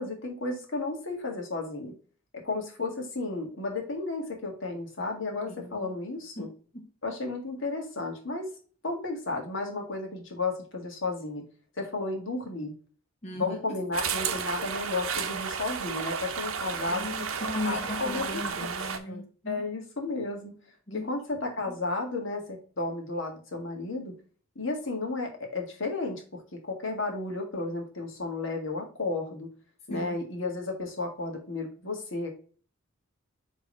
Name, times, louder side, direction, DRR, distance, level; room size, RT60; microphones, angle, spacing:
voice 1, 0.0-1.9 2.3-6.5 7.0-8.5 8.8-11.4 11.8-12.7 13.3-17.1 17.6-18.4 19.0-20.5 21.1-24.1 24.5-29.5 29.9-32.3, left 3 dB, 60° left, 1.7 m, -33 dB
voice 2, 5.4-5.9 6.4-6.5 6.7-6.9 13.2-13.8 16.9-19.7 20.9-21.2 21.6-21.7 29.9-30.2, left 1 dB, 30° left, 0.8 m, -37 dB
sound 1, 13.9-19.0, right 6 dB, 75° right, 0.8 m, -32 dB
5.2 x 3.5 x 5.3 m
head